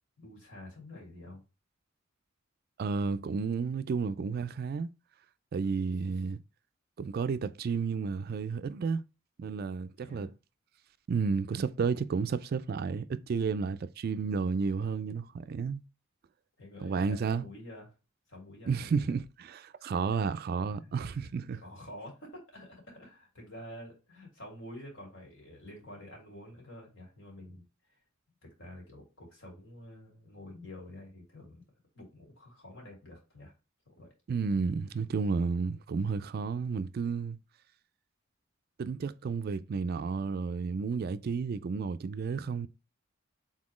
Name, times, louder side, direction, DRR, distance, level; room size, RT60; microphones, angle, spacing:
voice 1, 0.2-1.4 10.0-10.3 16.6-17.9 18.3-19.0 19.8-19.9 20.8-21.3 21.5-27.6 28.4-31.6 31.9-33.5 33.9-34.1, left 1 dB, 65° left, 2.6 m, -48 dB
voice 2, 2.8-4.9 5.5-6.4 7.0-9.0 9.4-10.3 11.1-15.8 16.8-17.5 18.7-21.6 34.3-37.4 38.8-42.7, right 5 dB, 50° right, 0.3 m, -32 dB
4.2 x 3.8 x 3.0 m
head